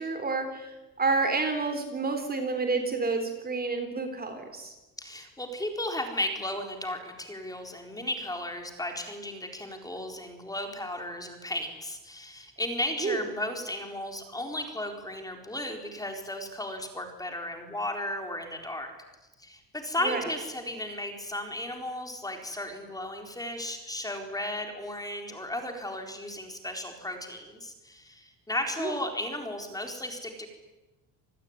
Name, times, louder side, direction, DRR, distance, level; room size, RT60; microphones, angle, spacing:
voice 1, 0.0-4.7 13.0-13.2 20.0-20.3 28.8-28.9, right 4 dB, 25° right, 6 dB, 3.9 m, -29 dB
voice 2, 5.0-18.9 19.4-30.5, left 1 dB, 10° left, 4 dB, 4.3 m, -35 dB
28.0 x 20.0 x 9.8 m, 1.1 s
cardioid pair, 145°, 39 cm